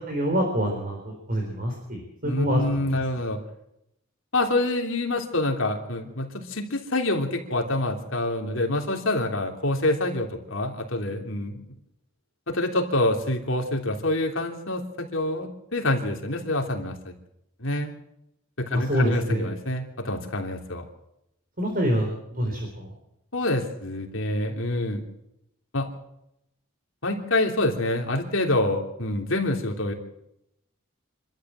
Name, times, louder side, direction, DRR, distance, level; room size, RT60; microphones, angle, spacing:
voice 1, 0.1-2.9 18.7-19.5 21.6-22.9, equal, 40° right, 2 dB, 4.3 m, -26 dB
voice 2, 2.2-3.4 4.3-11.6 12.5-17.1 17.6-17.9 18.6-20.8 23.3-25.0 25.7-25.9 27.0-29.9, left 2 dB, 60° left, 2 dB, 3.3 m, -26 dB
26.5 x 13.0 x 7.7 m, 0.82 s
head